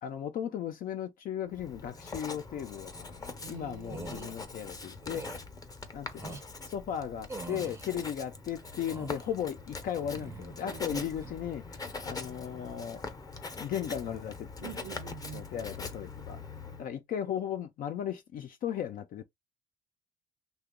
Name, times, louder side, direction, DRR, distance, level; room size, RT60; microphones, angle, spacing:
voice 1, 0.0-5.3 5.9-13.0 13.6-14.8 15.3-16.4 16.8-19.2, left 9 dB, 55° left, 0.5 m, -36 dB
Writing, 1.5-16.9, left 3 dB, 20° left, 0.7 m, -43 dB
voice 2, 3.4-4.4 10.6-11.1 14.6-15.5, right 13 dB, 70° right, 0.5 m, -46 dB
sound 1, 3.8-4.3 5.0-5.4 6.1-6.5 7.3-7.9 8.6-9.3 9.9-10.6 11.0-11.4, right 4 dB, 15° right, 0.6 m, -44 dB
2.9 x 2.3 x 3.6 m
cardioid pair, 110°, 17 cm